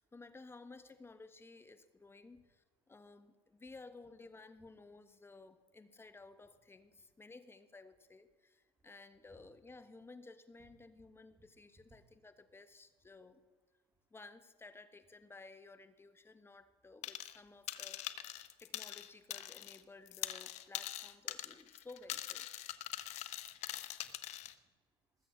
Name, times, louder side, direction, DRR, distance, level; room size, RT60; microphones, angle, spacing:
voice 1, 0.0-13.4 14.1-22.5, left 3 dB, 20° left, 11 dB, 1.3 m, -56 dB
voice 2, 11.9-12.2 13.8-14.1 16.4-16.6 18.4-18.6 22.8-25.3, right 2 dB, 25° right, 0 dB, 3.1 m, -72 dB
sound 1, 17.0-17.4 17.7-19.8 20.1-24.5, left 13 dB, 60° left, 0.9 m, -43 dB
20.0 x 7.7 x 6.5 m, 1.3 s
hypercardioid pair, 75°, 13 cm